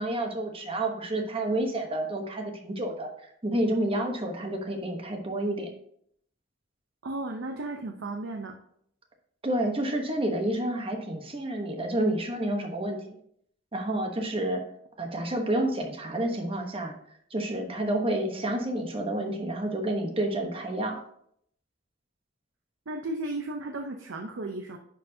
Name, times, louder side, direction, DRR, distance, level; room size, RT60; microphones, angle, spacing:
voice 1, 0.0-3.1 3.4-5.7 9.4-13.2 13.7-14.6 15.0-16.9 17.3-21.0, right 1 dB, 30° right, 3 dB, 1.0 m, -29 dB
voice 2, 7.0-8.6 22.9-24.8, right 2 dB, 80° right, 2 dB, 0.7 m, -34 dB
10.0 x 4.6 x 2.7 m, 0.66 s
head